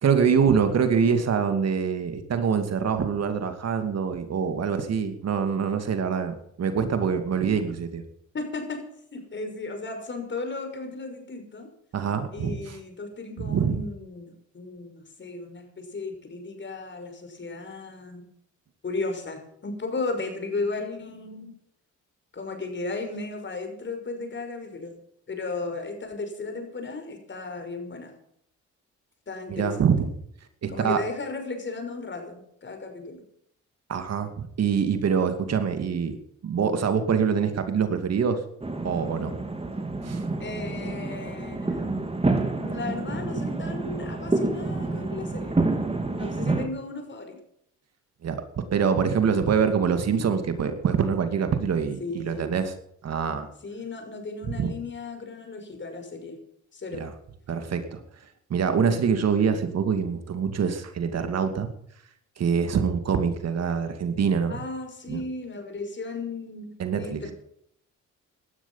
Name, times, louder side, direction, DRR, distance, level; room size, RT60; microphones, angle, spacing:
voice 1, 0.0-8.0 11.9-12.8 13.4-13.8 29.5-30.1 30.6-31.0 33.9-36.2 36.4-38.4 38.8-39.4 40.0-40.2 48.2-52.7 53.0-53.5 54.4-54.7 56.9-57.1 57.5-58.0 58.5-61.7 62.4-64.6 65.1-65.2 66.8-67.2, right 6 dB, 55° right, 8 dB, 2.5 m, -25 dB
voice 2, 8.3-8.8 9.1-11.7 12.3-18.3 18.8-21.5 22.3-24.9 25.3-28.1 29.3-29.7 30.7-33.2 40.4-41.9 42.6-45.6 46.1-47.4 52.0-52.5 53.6-56.4 56.7-57.1 64.5-67.3, left 3 dB, 40° left, 5 dB, 6.1 m, -35 dB
sound 1, 38.6-46.7, right 2 dB, 20° right, 3.1 m, -28 dB
18.0 x 12.5 x 5.7 m, 0.70 s
cardioid pair, 90°, 30 cm